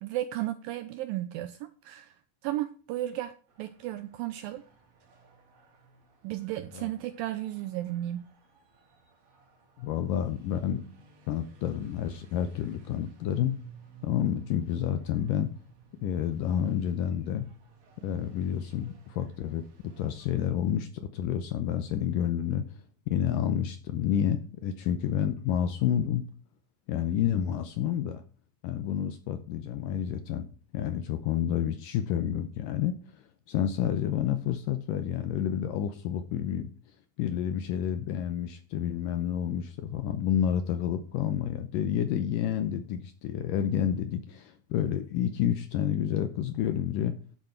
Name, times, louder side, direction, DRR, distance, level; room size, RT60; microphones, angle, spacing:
voice 1, 0.0-2.1 2.4-4.6 6.2-8.2, right 14 dB, 85° right, 12 dB, 2.1 m, -34 dB
sound 1, 3.5-20.5, right 4 dB, 60° right, 4.1 m, -56 dB
voice 2, 9.8-10.8 11.3-13.6 14.0-15.5 16.0-17.5 18.0-22.8 23.1-26.2 26.9-28.2 28.6-30.5 30.7-36.7 37.2-47.1, left 9 dB, 75° left, 9 dB, 2.0 m, -29 dB
10.5 x 7.8 x 4.4 m, 0.41 s
omnidirectional pair, 4.7 m